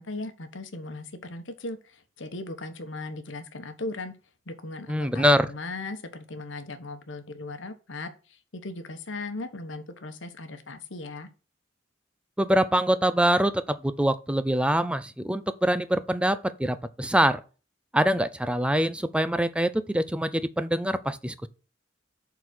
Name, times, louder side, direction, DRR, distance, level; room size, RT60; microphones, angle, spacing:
voice 1, 0.0-4.1 4.5-11.3, left 2 dB, 80° left, 1.2 m, -38 dB
voice 2, 4.9-5.5 12.4-17.4 17.9-21.5, right 1 dB, 5° right, 0.5 m, -24 dB
7.0 x 4.1 x 6.2 m
head